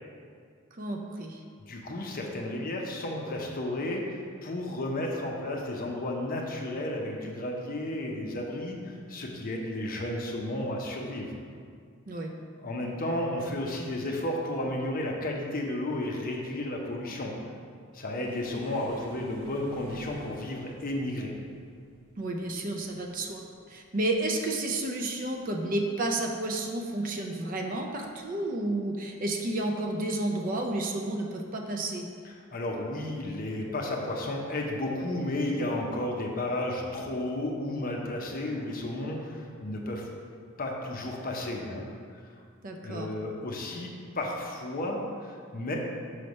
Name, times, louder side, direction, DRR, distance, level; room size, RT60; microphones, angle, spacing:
voice 1, 0.7-1.4 12.1-12.3 22.2-32.1 42.6-43.1, right 2 dB, 40° right, 2 dB, 0.5 m, -31 dB
voice 2, 1.6-11.3 12.6-17.3 17.9-21.3 32.2-40.1 40.6-41.8 42.2-42.3 42.8-45.8, left 1 dB, 45° left, 0 dB, 0.7 m, -33 dB
sound 1, 18.2-25.5 25.8-26.1 26.5-26.6 27.5-28.0 29.0-29.2 30.6-30.7, equal, 20° right, 1.4 m, -51 dB
5.7 x 3.2 x 5.2 m, 2.1 s
head